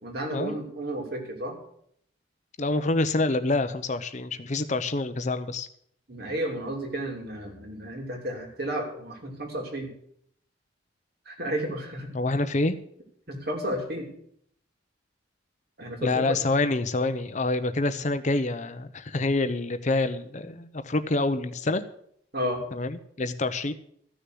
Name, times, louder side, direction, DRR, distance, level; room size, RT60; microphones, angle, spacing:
voice 1, 0.0-1.6 6.1-9.9 11.3-12.1 13.3-14.1 15.8-16.4 22.3-22.6, equal, 55° right, 2 dB, 3.0 m, -32 dB
voice 2, 2.6-5.7 12.1-12.7 16.0-21.8 22.7-23.7, left 2 dB, 40° left, 10 dB, 0.7 m, -27 dB
14.0 x 6.8 x 7.7 m, 0.67 s
head